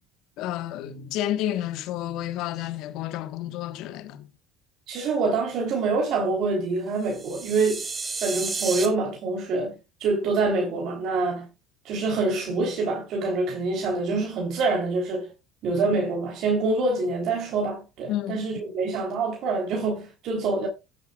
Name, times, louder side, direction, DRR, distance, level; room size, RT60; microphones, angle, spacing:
voice 1, 0.4-4.3 18.1-18.5, left 12 dB, 65° left, 1.4 m, -30 dB
voice 2, 4.9-7.8 8.2-9.7 10.0-11.5 11.8-15.3 15.6-20.7, right 3 dB, 55° right, 3.8 m, -26 dB
sound 1, 7.0-8.9, right 4 dB, 30° right, 2.8 m, -32 dB
14.0 x 10.5 x 2.4 m
hypercardioid pair, 65°, 0 cm